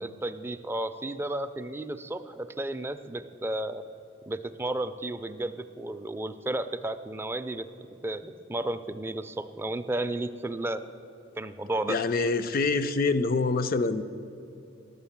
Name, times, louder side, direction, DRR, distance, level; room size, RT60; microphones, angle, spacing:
voice 1, 0.0-3.8 4.3-7.7 8.0-10.8 11.4-12.0, right 1 dB, 10° right, 9 dB, 0.3 m, -33 dB
voice 2, 11.9-14.0, left 3 dB, 50° left, 12 dB, 0.4 m, -25 dB
11.0 x 6.8 x 7.2 m, 2.7 s
head